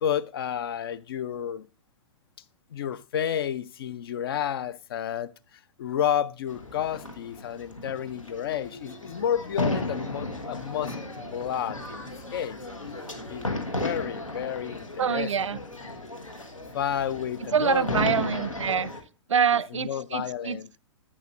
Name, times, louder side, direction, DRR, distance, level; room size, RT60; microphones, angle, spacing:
voice 1, 0.0-1.7 2.7-12.0 12.3-12.6 13.3-13.5 13.8-15.5 16.7-18.0 19.7-20.7, left 9 dB, 45° left, 0.5 m, -31 dB
sound 1, 6.5-19.0, left 2 dB, 85° left, 1.4 m, -34 dB
voice 2, 15.0-15.6 17.5-18.9 19.3-20.6, right 7 dB, 70° right, 0.4 m, -25 dB
10.5 x 8.7 x 2.5 m
figure-of-eight pair, 110°, 16 cm